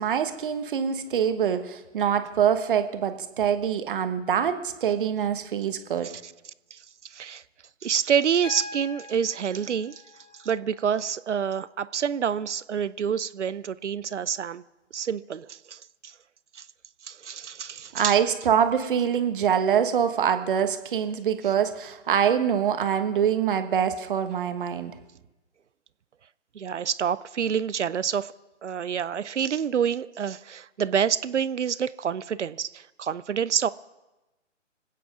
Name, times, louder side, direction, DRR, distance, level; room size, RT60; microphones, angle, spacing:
voice 1, 0.0-6.1 17.9-24.9, right 8 dB, 45° right, 1.3 m, -24 dB
voice 2, 7.0-7.4 7.8-10.0 10.4-14.6 14.9-16.1 16.5-16.6 17.0-18.2 26.5-28.3 28.6-33.7, right 8 dB, 65° right, 0.6 m, -27 dB
Piano, 8.4-12.4 14.0-14.1, left 3 dB, 75° left, 3.5 m, -44 dB
26.5 x 9.2 x 4.9 m
figure-of-eight pair, 135°, 37 cm